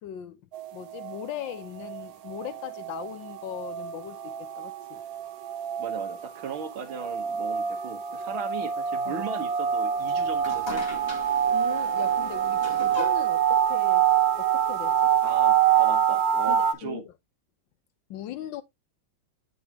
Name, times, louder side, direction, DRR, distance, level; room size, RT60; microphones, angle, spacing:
voice 1, 0.0-0.4 0.7-5.0 9.0-9.2 11.5-14.1 14.4-15.1 16.5-17.1 18.1-18.6, left 11 dB, 75° left, 1.4 m, -39 dB
sound 1, 0.5-16.7, right 9 dB, 55° right, 1.2 m, -26 dB
voice 2, 5.8-11.0 15.2-17.0, right 6 dB, 85° right, 2.0 m, -37 dB
sound 2, 9.9-15.2, left 3 dB, 15° left, 1.7 m, -41 dB
9.1 x 4.8 x 2.8 m
omnidirectional pair, 2.2 m